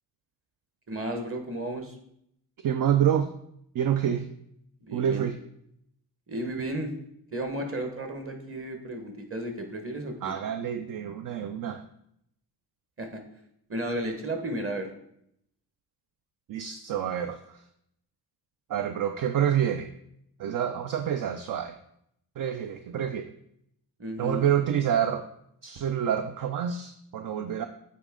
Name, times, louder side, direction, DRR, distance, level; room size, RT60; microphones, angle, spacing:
voice 1, 0.9-1.9 4.8-5.2 6.3-6.9 7.3-10.3 13.0-13.2 13.7-14.9 24.0-24.5, right 1 dB, 35° right, 5 dB, 1.4 m, -33 dB
voice 2, 2.6-3.3 3.7-4.3 4.9-5.4 10.2-11.8 16.5-17.6 18.7-19.9 20.4-21.8 22.4-23.3 24.2-25.3 25.6-27.7, right 9 dB, 55° right, 8 dB, 0.5 m, -27 dB
8.5 x 4.2 x 3.7 m, 0.74 s
cardioid pair, 90°, 39 cm